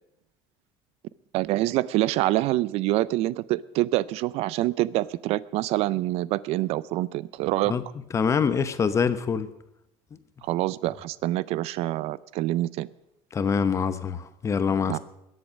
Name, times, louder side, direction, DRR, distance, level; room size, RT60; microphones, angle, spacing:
voice 1, 1.3-7.7 10.4-12.9 14.9-15.0, right 16 dB, 60° right, 0.5 m, -26 dB
voice 2, 8.1-9.5 13.3-15.0, left 6 dB, 25° left, 0.9 m, -25 dB
21.0 x 7.9 x 6.4 m
cardioid pair, 135°, 12 cm